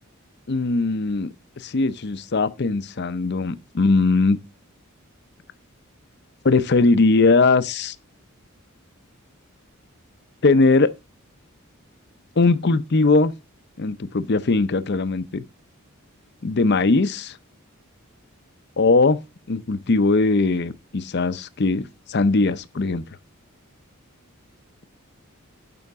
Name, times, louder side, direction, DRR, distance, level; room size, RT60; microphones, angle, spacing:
voice 1, 0.5-4.4 6.4-8.0 10.4-10.9 12.4-13.3 13.8-15.4 16.4-17.4 18.8-19.2 19.5-23.0, left 3 dB, 50° left, 0.6 m, -20 dB
11.0 x 5.7 x 3.5 m
head